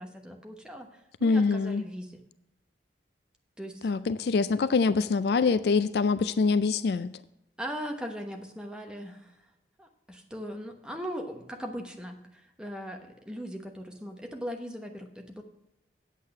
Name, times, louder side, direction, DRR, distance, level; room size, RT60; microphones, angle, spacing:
voice 1, 0.0-2.2 3.6-3.9 7.6-9.3 9.8-15.4, equal, 5° right, 3 dB, 1.1 m, -39 dB
voice 2, 1.2-1.8 3.8-7.1, left 4 dB, 60° left, 14 dB, 0.4 m, -24 dB
8.4 x 8.2 x 5.7 m, 0.88 s
head